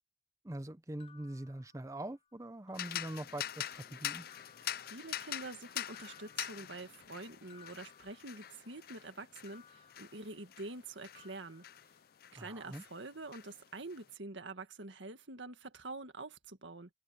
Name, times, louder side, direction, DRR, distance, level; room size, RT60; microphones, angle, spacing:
voice 1, 0.4-4.3 12.4-12.8, right 1 dB, 15° right, 0.6 m, -43 dB
sound 1, 1.0-2.3 2.7-3.4 4.3-5.6 5.9-8.9 9.5-10.8 11.1-12.5, left 8 dB, 30° left, 7.5 m, -63 dB
sound 2, 2.7-12.4 12.7-14.0, left 11 dB, 50° left, 0.4 m, -44 dB
voice 2, 4.9-11.6 12.3-16.9, right 2 dB, 75° right, 1.9 m, -46 dB
open air
head